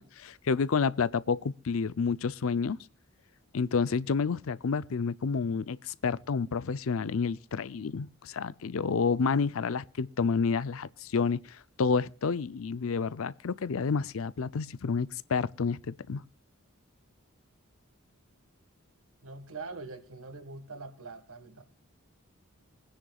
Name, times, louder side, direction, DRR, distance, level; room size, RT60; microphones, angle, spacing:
voice 1, 0.0-2.8 3.5-16.2, left 5 dB, 70° left, 0.5 m, -29 dB
voice 2, 19.2-21.6, right 3 dB, 75° right, 1.7 m, -43 dB
23.5 x 10.0 x 2.3 m
head